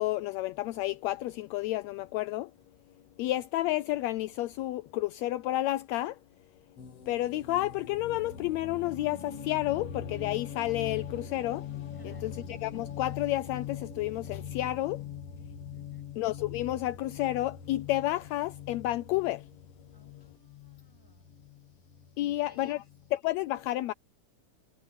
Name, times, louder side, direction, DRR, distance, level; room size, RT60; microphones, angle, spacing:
voice 1, 0.0-2.5 3.2-6.2 7.1-11.7 12.0-15.0 16.2-19.5 22.2-22.8 23.1-23.9, left 16 dB, 80° left, 1.8 m, -31 dB
sound 1, 6.8-23.2, left 8 dB, 55° left, 2.7 m, -42 dB
voice 2, 11.9-12.4 15.7-16.1 19.9-21.4 22.2-22.8, left 1 dB, 5° left, 7.4 m, -60 dB
omnidirectional pair, 3.3 m